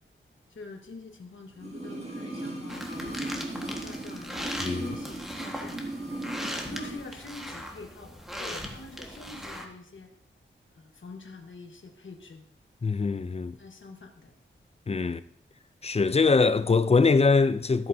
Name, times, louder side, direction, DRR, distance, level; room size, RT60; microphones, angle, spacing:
voice 1, 0.5-5.8 6.4-10.1 10.7-12.5 13.6-14.3 15.0-15.2, left 3 dB, 70° left, 1.4 m, -46 dB
sound 1, 1.6-7.1 7.3-7.4, right 1 dB, 30° right, 2.3 m, -37 dB
sound 2, 2.7-9.6, equal, ahead, 1.5 m, -39 dB
voice 2, 12.8-13.6 14.9-15.2 15.8-17.9, left 4 dB, 30° left, 0.5 m, -23 dB
14.0 x 7.7 x 2.7 m
wide cardioid pair, 65°, 21 cm